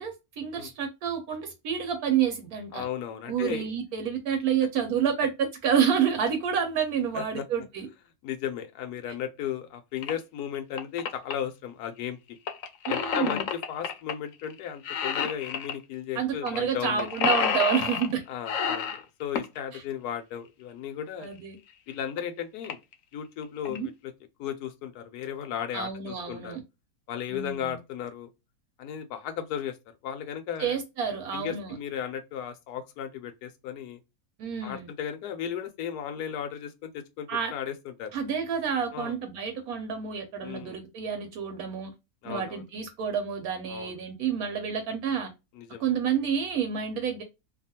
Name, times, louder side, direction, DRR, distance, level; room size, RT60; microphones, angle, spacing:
voice 1, 0.0-2.8 3.3-7.9 12.9-13.5 16.1-18.2 19.7-19.8 21.2-21.6 23.7-23.9 25.7-26.6 27.3-27.7 30.6-31.8 34.4-34.9 37.3-37.5 38.1-41.9 42.2-45.3 45.8-47.2, right 7 dB, 75° right, 1.1 m, -29 dB
voice 2, 2.7-3.7 7.1-7.4 8.2-12.2 12.9-13.4 13.7-17.1 18.3-21.3 21.9-22.8 23.1-24.1 24.4-26.6 27.1-28.3 28.8-29.8 30.0-30.8 31.3-34.0 34.6-38.1 38.9-39.1 40.4-40.8 42.2-42.6 43.7-43.9 45.5-45.8, left 9 dB, 85° left, 1.1 m, -35 dB
sound 1, 10.0-10.1 10.5-11.3 12.5-14.1 14.4-14.6 14.8-15.8 16.5-16.6 16.8-18.1 18.5-19.6 21.2-21.3 21.9-22.0 22.2-22.3 22.6-22.9 23.4-23.8, left 6 dB, 65° left, 0.9 m, -29 dB
2.7 x 2.3 x 2.7 m
omnidirectional pair, 1.6 m